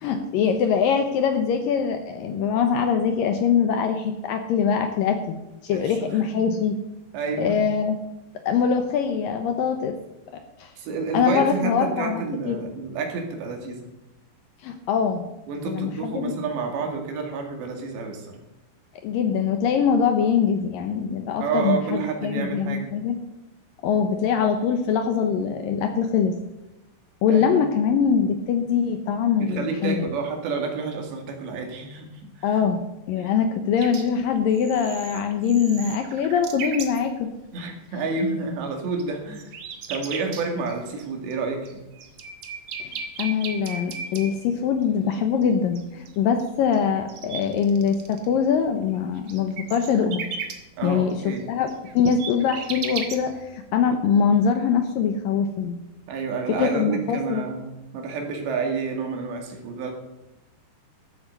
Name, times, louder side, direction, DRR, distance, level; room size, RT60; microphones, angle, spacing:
voice 1, 0.0-6.8 7.4-8.0 8.5-10.0 10.6-10.7 11.1-12.2 12.5-12.6 14.6-15.3 15.7-16.3 19.0-23.2 23.8-26.4 27.2-30.1 32.4-32.8 33.1-37.3 42.8-50.3 50.8-55.8 56.6-57.4, left 7 dB, 75° left, 6 dB, 2.2 m, -23 dB
voice 2, 5.7-6.1 6.3-6.6 7.1-7.6 10.8-13.9 15.5-18.4 21.4-22.9 27.3-27.5 29.4-32.1 32.4-32.6 33.2-33.3 37.5-39.5 39.9-41.8 50.8-51.5 56.1-59.9, right 4 dB, 80° right, 3 dB, 4.4 m, -29 dB
sound 1, 33.8-34.1 34.4-37.0 39.0-39.1 39.3-40.7 41.0-41.1 41.3-41.4 41.7-44.3 45.1-45.2 45.4-45.5 45.8-46.1 46.4-46.5 46.7-48.3 48.5-50.5 51.1-51.2 51.4-51.5 51.6-53.5, right 6 dB, 55° right, 2.0 m, -35 dB
13.5 x 8.7 x 6.7 m, 0.99 s
omnidirectional pair, 4.9 m